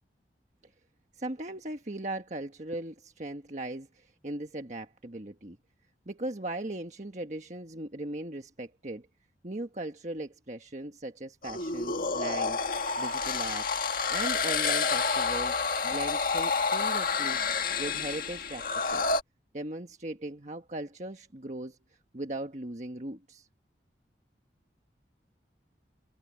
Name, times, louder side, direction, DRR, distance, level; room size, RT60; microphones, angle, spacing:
voice 1, 1.2-5.6 6.1-9.1 9.4-12.6 13.0-13.7 14.1-15.6 15.8-17.4 17.8-18.7 18.9-19.1 19.5-21.8 22.1-23.5, right 1 dB, 40° right, 1.5 m, -38 dB
sound 1, 11.4-19.2, left 4 dB, 50° left, 1.9 m, -29 dB
head